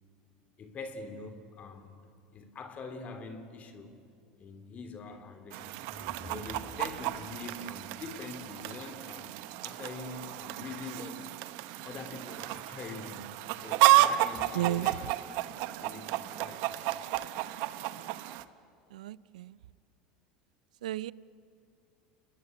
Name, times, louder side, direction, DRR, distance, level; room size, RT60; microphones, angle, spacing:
voice 1, 0.6-1.9 2.3-3.9 4.4-5.9 6.2-9.3 9.6-11.4 11.8-17.1, left 4 dB, 40° left, 7 dB, 3.2 m, -44 dB
Chicken rooster, 5.5-18.4, right 16 dB, 65° right, 1.1 m, -31 dB
sound 1, 5.7-7.6, left 1 dB, 20° left, 5.6 m, -51 dB
voice 2, 14.5-14.9 18.9-19.6 20.8-21.1, right 15 dB, 85° right, 21 dB, 0.5 m, -33 dB
29.5 x 20.5 x 7.8 m, 2.6 s
hypercardioid pair, 90°, 4 cm